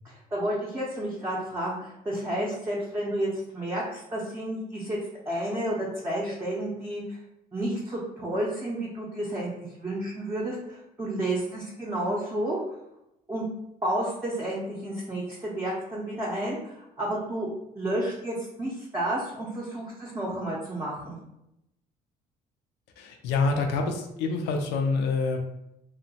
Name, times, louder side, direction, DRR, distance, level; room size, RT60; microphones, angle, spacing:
voice 1, 0.0-5.0 5.3-7.2 7.5-9.5 9.8-12.6 13.3-13.4 13.8-17.5 17.7-21.2, right 1 dB, 15° right, -5 dB, 0.6 m, -31 dB
voice 2, 23.0-25.4, left 3 dB, 90° left, 4 dB, 0.4 m, -26 dB
2.8 x 2.1 x 2.7 m, 0.84 s
cardioid pair, 110°, 17 cm